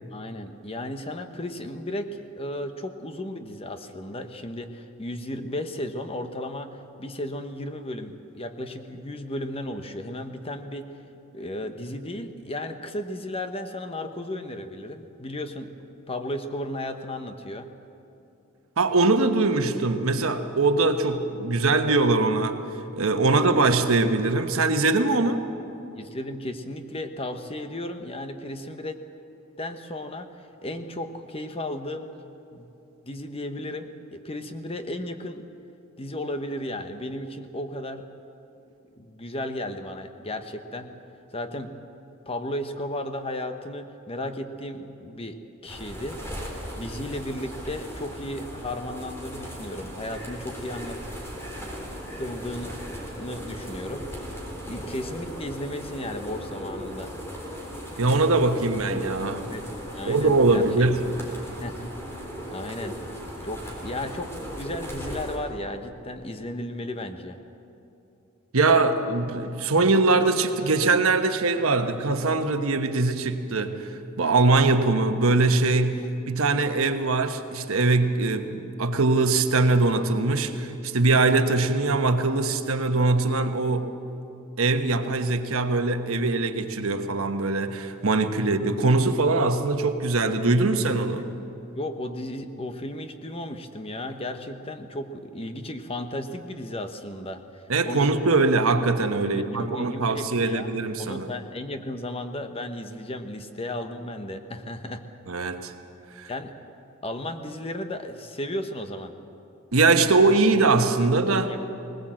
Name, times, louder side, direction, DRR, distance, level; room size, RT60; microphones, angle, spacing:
voice 1, 0.1-10.9 11.3-15.7 16.1-17.7 23.3-23.4 26.0-29.0 29.6-30.3 30.6-32.0 32.5-32.7 33.0-35.4 36.0-38.0 38.9-40.9 41.3-41.7 42.3-46.5 46.8-51.0 52.1-52.7 53.2-54.0 54.7-57.1 59.5-60.6 61.6-61.9 62.5-63.0 63.4-67.4 88.4-88.5 91.8-98.0 99.2-100.7 101.0-105.0 106.3-106.5 107.0-109.1 111.3-111.7, left 1 dB, 25° left, 7 dB, 1.1 m, -34 dB
voice 2, 18.8-22.6 23.0-25.4 58.0-59.5 60.0-61.0 68.5-73.9 74.2-83.9 84.6-91.2 97.7-101.3 105.3-105.7 106.2-106.3 109.7-111.5, right 3 dB, 80° right, 7 dB, 1.2 m, -22 dB
sound 1, 45.7-65.4, equal, 10° left, 3.5 m, -37 dB
20.5 x 19.0 x 7.6 m, 2.8 s
head